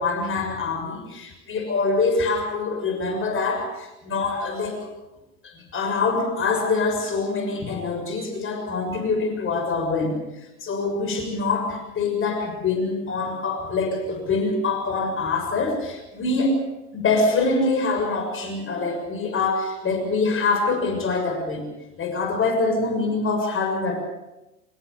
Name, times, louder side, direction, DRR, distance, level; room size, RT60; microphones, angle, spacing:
voice 1, 0.0-4.9 5.4-16.7 16.9-21.6 22.0-24.0, left 3 dB, 30° left, 4 dB, 6.7 m, -25 dB
28.0 x 15.5 x 7.0 m, 1.0 s
hypercardioid pair, 105°, 45 cm